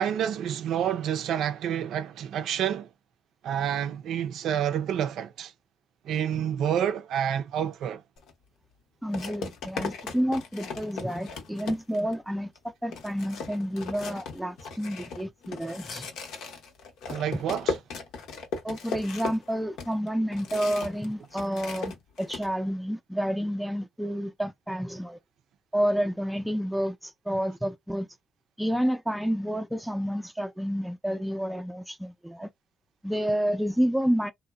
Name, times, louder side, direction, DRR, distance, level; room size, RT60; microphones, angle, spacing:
voice 1, 0.0-2.9 3.4-5.5 6.0-8.0 17.1-17.8, right 9 dB, 80° right, 0.4 m, -28 dB
sound 1, 8.2-8.3 9.1-12.1 12.6-12.7 12.9-21.1 21.3-22.5, left 5 dB, 85° left, 0.8 m, -37 dB
voice 2, 9.0-16.1 18.6-25.2 25.7-28.1 28.6-32.5 33.0-34.3, equal, ahead, 0.4 m, -29 dB
2.8 x 2.1 x 2.3 m
cardioid pair, 90°, 0 cm